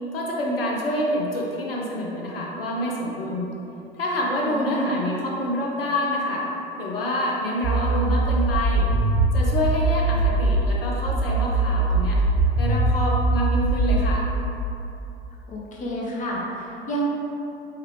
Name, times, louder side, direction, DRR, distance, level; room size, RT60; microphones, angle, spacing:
voice 1, 0.1-3.5 4.0-6.5 6.8-8.9 9.3-12.2 12.6-14.3, left 1 dB, 75° left, -3 dB, 0.7 m, -27 dB
voice 2, 4.4-4.9 15.5-17.1, right 1 dB, 25° left, -3 dB, 0.7 m, -29 dB
sound 1, 7.6-10.6 11.1-14.1, right 2 dB, 20° right, 0.8 m, -21 dB
4.5 x 2.4 x 3.2 m, 2.9 s
figure-of-eight pair, 70°, 29 cm